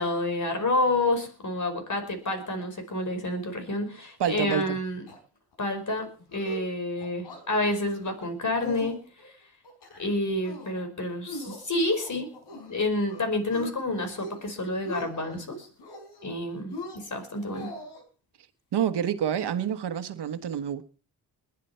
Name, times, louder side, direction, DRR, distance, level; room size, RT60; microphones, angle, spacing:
voice 1, 0.0-5.0 5.6-6.1 6.3-9.0 9.2-9.3 10.0-12.3 12.7-15.7 16.2-17.7, left 2 dB, 50° left, 5.2 m, -29 dB
sound 1, 4.2-4.8 5.1-5.2 5.5-5.8 6.2-6.7 7.0-7.4 7.8-8.3 8.6-9.3 9.6-10.1 10.4-10.8 11.3-12.8 13.1-13.7 14.1-14.5 14.7-15.4 15.8-16.4 16.7-18.0, left 1 dB, 85° left, 4.6 m, -42 dB
voice 2, 4.2-4.8 18.7-20.8, right 9 dB, 85° right, 1.4 m, -28 dB
21.5 x 10.0 x 4.5 m
cardioid pair, 75°, 39 cm